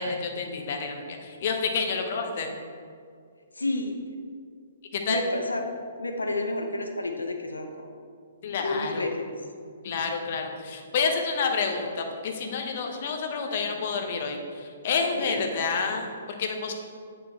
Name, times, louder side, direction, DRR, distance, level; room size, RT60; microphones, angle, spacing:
voice 1, 0.0-2.5 4.9-5.2 8.4-9.1 9.8-16.7, left 5 dB, 50° left, 4 dB, 0.9 m, -29 dB
voice 2, 3.6-4.0 5.1-5.7 6.0-7.7 8.6-9.3 15.2-15.4, left 2 dB, 80° left, 4 dB, 0.7 m, -30 dB
7.7 x 5.0 x 4.3 m, 2.3 s
figure-of-eight pair, 125°, 0 cm